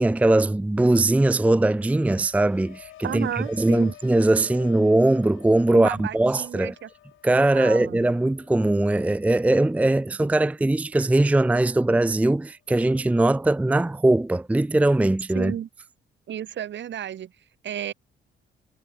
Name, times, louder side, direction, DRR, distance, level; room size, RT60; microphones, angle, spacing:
voice 1, 0.0-6.7 7.2-15.5, right 2 dB, 5° right, 0.5 m, -21 dB
sound 1, 2.1-11.8 12.1-12.6, left 14 dB, 85° left, 5.7 m, -51 dB
voice 2, 3.0-3.9 5.7-6.9 7.3-8.1 15.3-15.7 16.3-17.3 17.6-17.9, right 10 dB, 65° right, 3.7 m, -32 dB
cardioid pair, 90°, 20 cm